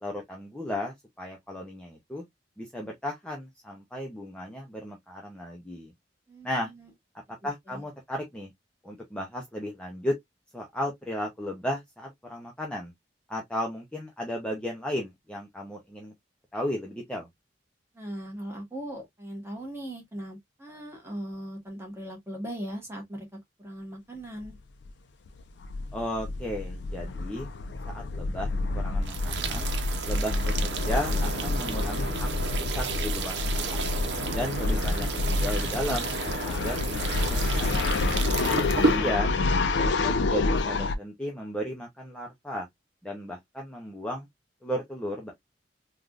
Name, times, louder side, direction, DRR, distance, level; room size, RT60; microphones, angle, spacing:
voice 1, 0.0-2.2 2.6-5.9 6.4-6.7 7.4-8.5 8.8-10.2 10.5-12.9 13.3-16.1 16.5-17.3 25.9-27.5 27.9-29.7 30.1-32.3 32.7-33.9 34.3-36.1 36.4-38.1 38.7-39.4 39.8-42.7 43.0-44.3 44.6-45.3, equal, 5° left, 0.6 m, -35 dB
voice 2, 6.3-6.9 7.7-7.8 17.9-23.3 23.6-24.6 38.5-39.1, right 1 dB, 15° right, 1.2 m, -39 dB
sound 1, 24.4-24.6 24.8-24.9 25.3-41.0, left 3 dB, 75° left, 0.4 m, -28 dB
sound 2, 29.0-39.0, right 3 dB, 80° right, 0.7 m, -32 dB
3.5 x 2.3 x 2.4 m
head